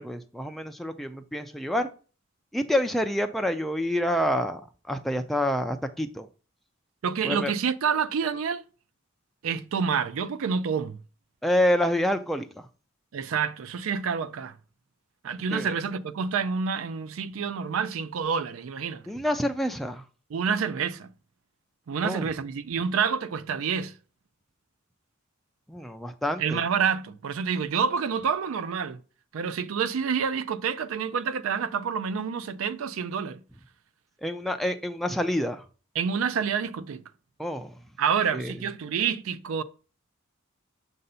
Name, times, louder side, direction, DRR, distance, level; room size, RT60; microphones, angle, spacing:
voice 1, 0.0-1.9 2.5-4.6 4.9-6.3 7.2-7.5 11.4-12.7 15.5-15.7 19.1-20.0 22.0-22.3 25.7-26.6 34.2-35.6 37.4-37.7 38.3-38.5, left 1 dB, ahead, 0.3 m, -27 dB
voice 2, 7.0-8.6 9.4-11.0 13.1-14.5 15.2-19.0 20.3-21.1 21.9-23.9 26.4-29.0 29.3-33.4 36.0-37.0 38.0-39.6, right 6 dB, 75° right, 0.4 m, -28 dB
6.6 x 2.7 x 5.4 m
head